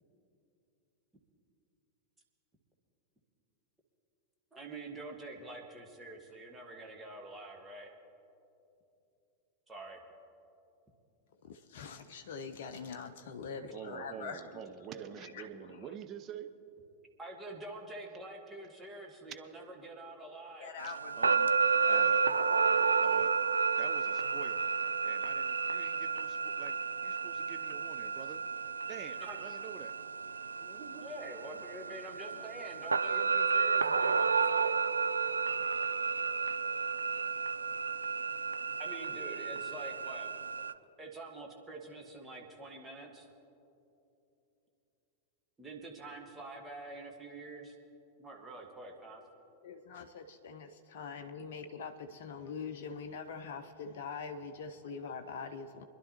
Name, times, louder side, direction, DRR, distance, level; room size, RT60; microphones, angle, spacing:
voice 1, 4.5-7.9 9.7-10.0 17.2-20.7 29.2-29.4 30.6-34.8 38.8-40.3 41.0-43.3 45.6-47.7 48.2-49.2, right 2 dB, 15° right, 0 dB, 1.7 m, -46 dB
voice 2, 11.4-15.9 20.6-22.3 23.1-23.2 49.6-55.8, left 5 dB, 55° left, 7 dB, 0.6 m, -44 dB
voice 3, 13.6-16.5 20.8-21.5 21.9-22.3 22.7-23.4 23.8-24.7 25.0-28.5 28.9-30.0, right 9 dB, 30° right, 8 dB, 0.7 m, -48 dB
sound 1, 20.8-40.7, right 5 dB, 80° right, 0.3 m, -31 dB
25.5 x 11.0 x 3.0 m, 2.8 s
figure-of-eight pair, 90°, 0 cm